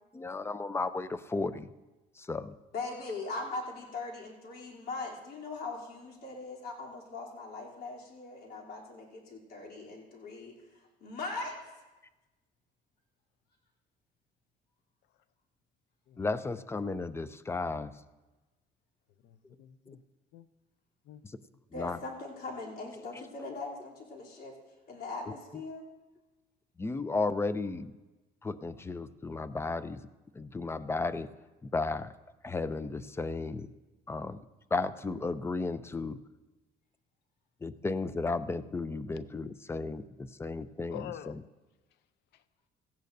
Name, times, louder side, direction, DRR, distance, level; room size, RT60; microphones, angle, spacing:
voice 1, 0.1-1.7 2.3-2.5 16.2-17.9 21.8-22.0 26.8-27.9 28.4-30.0 30.4-31.3 31.7-32.1 32.4-33.7 34.1-34.4 34.7-36.2 37.6-41.0, left 3 dB, 15° left, 0.5 m, -34 dB
voice 2, 2.7-10.5 11.0-11.7 21.7-24.6 24.9-25.8, left 3 dB, 65° left, 3.2 m, -40 dB
voice 3, 16.1-16.5 19.2-20.0 20.3-20.5 21.1-21.2 40.9-41.4 42.3-42.4, left 12 dB, 80° left, 0.6 m, -46 dB
17.5 x 14.5 x 2.7 m
cardioid pair, 110°, 17 cm